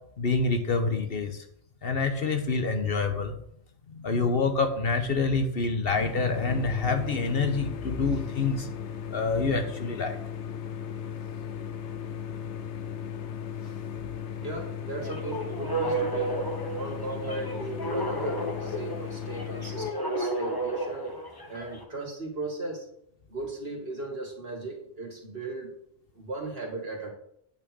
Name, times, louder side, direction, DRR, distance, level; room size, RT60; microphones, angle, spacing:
voice 1, 0.2-1.4 1.8-3.3 3.9-8.7 9.1-10.2, left 4 dB, 55° left, 6 dB, 1.2 m, -27 dB
sound 1, 5.9-19.9, left 8 dB, 75° left, 1.0 m, -36 dB
voice 2, 14.4-16.4 16.7-21.2 21.5-22.9 23.3-25.7 26.1-27.1, right 2 dB, 60° right, 1 dB, 2.5 m, -36 dB
sound 2, 15.0-21.8, right 1 dB, 20° left, 1.1 m, -33 dB
9.0 x 4.6 x 6.1 m, 0.71 s
omnidirectional pair, 1.2 m